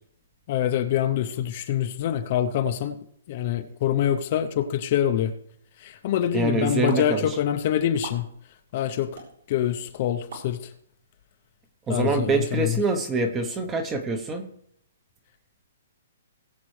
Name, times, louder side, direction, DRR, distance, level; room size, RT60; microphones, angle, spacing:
voice 1, 0.5-3.0 3.3-5.3 5.8-8.3 8.7-9.2 9.5-10.7 11.9-12.8, left 10 dB, 30° left, 8 dB, 0.6 m, -25 dB
voice 2, 6.3-7.3 11.9-14.4, right 3 dB, 10° right, 7 dB, 0.8 m, -25 dB
sound 1, 6.9-7.0 8.0-8.2 9.2-9.3 10.3-10.5, right 5 dB, 60° right, 3.9 m, -36 dB
19.5 x 7.4 x 3.2 m, 0.69 s
hypercardioid pair, 175°, 0 cm